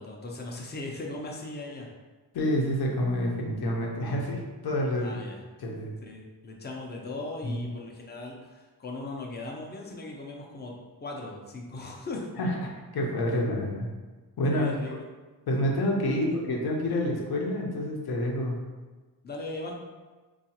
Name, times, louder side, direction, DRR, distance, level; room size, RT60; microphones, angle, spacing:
voice 1, 0.0-1.9 5.0-5.4 6.0-10.7 11.0-12.3 14.5-15.0 19.2-19.7, left 2 dB, 25° left, 0 dB, 0.5 m, -38 dB
voice 2, 2.3-5.2 5.6-5.9 7.4-7.6 12.4-13.9 14.4-14.7 15.5-18.6, left 1 dB, 70° left, 0 dB, 0.8 m, -28 dB
4.6 x 2.4 x 2.8 m, 1.3 s
wide cardioid pair, 145°, 39 cm